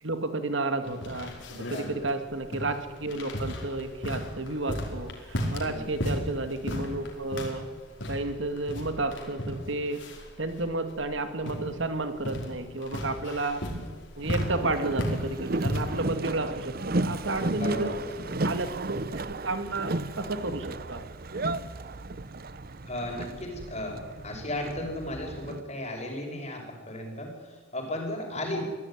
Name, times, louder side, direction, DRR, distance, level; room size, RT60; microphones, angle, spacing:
voice 1, 0.0-7.7 8.1-10.0 10.4-13.6 14.2-18.0 18.4-21.0, right 2 dB, 65° right, 9 dB, 2.1 m, -32 dB
sound 1, 0.9-16.0, equal, 60° left, 4.9 m, -35 dB
voice 2, 1.7-2.1 5.6-6.2 17.5-18.4 22.8-28.7, left 1 dB, 30° left, 2 dB, 5.3 m, -36 dB
Boat Water vehicle, 14.2-25.6, right 2 dB, 45° right, 0.8 m, -34 dB
24.0 x 16.0 x 10.0 m, 1.4 s
head